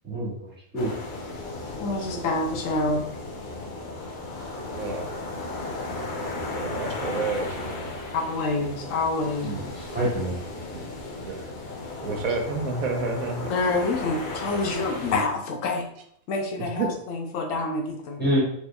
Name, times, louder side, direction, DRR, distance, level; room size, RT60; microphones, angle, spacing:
voice 1, 0.0-0.9 9.4-10.4 18.2-18.4, right 1 dB, 10° right, -7 dB, 1.3 m, -27 dB
sound 1, 0.8-15.2, left 2 dB, 50° left, 0.6 m, -35 dB
voice 2, 1.8-3.1 8.1-9.6 13.5-15.9 16.3-18.2, left 3 dB, 75° left, 3 dB, 1.0 m, -27 dB
voice 3, 4.7-5.1 6.5-7.9 10.7-10.8 11.2-11.5 12.0-13.5 16.8-16.9, right 3 dB, 85° right, 3 dB, 1.1 m, -30 dB
4.4 x 3.1 x 2.2 m, 0.70 s
omnidirectional pair, 1.5 m